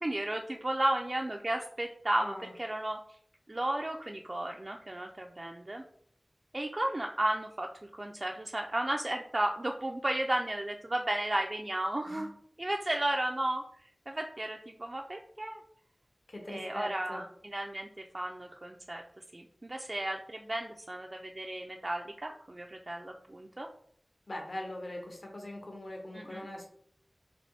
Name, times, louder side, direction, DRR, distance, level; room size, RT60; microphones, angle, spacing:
voice 1, 0.0-3.0 3.5-5.8 6.5-7.7 8.0-12.3 12.6-13.6 14.1-15.6 16.5-19.0 19.3-23.7 26.1-26.5, right 1 dB, 45° right, 2 dB, 0.3 m, -34 dB
voice 2, 2.2-2.5 12.1-12.3 16.3-17.2 24.3-26.7, left 1 dB, 65° left, 1 dB, 0.9 m, -41 dB
4.0 x 3.0 x 3.3 m, 0.64 s
wide cardioid pair, 55°, 0 cm